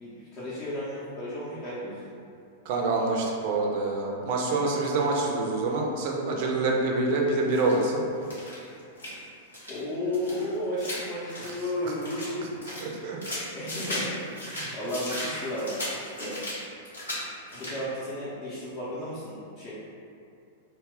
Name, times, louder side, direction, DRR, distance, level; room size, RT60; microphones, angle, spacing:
voice 1, 0.0-2.1 9.7-12.5 13.5-16.4 17.5-19.7, left 1 dB, 35° left, -10 dB, 0.5 m, -33 dB
voice 2, 2.7-8.1 11.4-11.5 12.8-13.4 14.5-14.8, right 3 dB, 45° right, -1 dB, 0.4 m, -26 dB
sound 1, 7.5-7.8 8.2-9.2 9.5-9.8 10.1-12.3 12.6-14.1 14.4-16.6 16.9-17.2 17.5-17.9, left 1 dB, 80° left, 0.9 m, -36 dB
2.1 x 2.0 x 3.5 m, 2.5 s
figure-of-eight pair, 95°, 0 cm